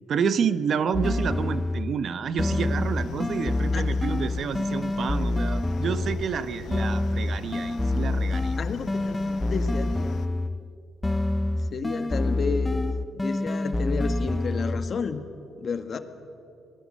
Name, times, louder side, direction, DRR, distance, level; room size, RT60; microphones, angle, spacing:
voice 1, 0.1-8.6, right 6 dB, 60° right, 13 dB, 0.9 m, -29 dB
sound 1, 0.9-2.0 2.4-6.3 6.7-10.7 11.0-15.0, left 2 dB, 15° left, 0.5 m, -27 dB
sound 2, 2.5-10.3, left 7 dB, 70° left, 0.9 m, -40 dB
voice 2, 8.6-10.2 11.7-12.9 13.1-15.2 15.6-16.0, left 5 dB, 50° left, 9 dB, 1.7 m, -31 dB
26.0 x 20.0 x 6.5 m, 2.6 s
cardioid pair, 90°, 0 cm